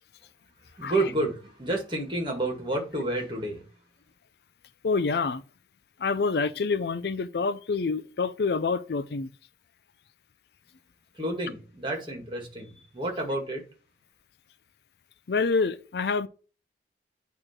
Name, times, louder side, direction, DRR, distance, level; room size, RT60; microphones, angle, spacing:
voice 1, 0.8-3.6 11.1-13.6, right 2 dB, 25° right, 2.0 m, -30 dB
voice 2, 4.8-5.4 6.0-9.3 15.3-16.3, left 4 dB, 65° left, 0.5 m, -27 dB
8.8 x 3.1 x 5.9 m
head